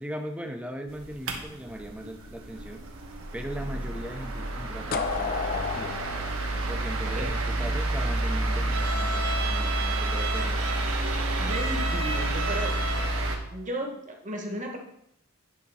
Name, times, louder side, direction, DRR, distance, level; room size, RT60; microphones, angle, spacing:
voice 1, 0.0-2.8 3.3-5.9 6.7-10.6, equal, 5° right, 5 dB, 0.7 m, -39 dB
sound 1, 0.9-13.4, right 1 dB, 60° right, 1.3 m, -29 dB
sound 2, 4.9-7.7, left 5 dB, 40° left, 0.5 m, -32 dB
Bowed string instrument, 8.7-13.3, right 3 dB, 75° right, 1.3 m, -34 dB
voice 2, 11.4-12.8 13.5-14.8, right 1 dB, 35° right, 2 dB, 1.3 m, -34 dB
9.4 x 3.7 x 5.5 m, 0.75 s
head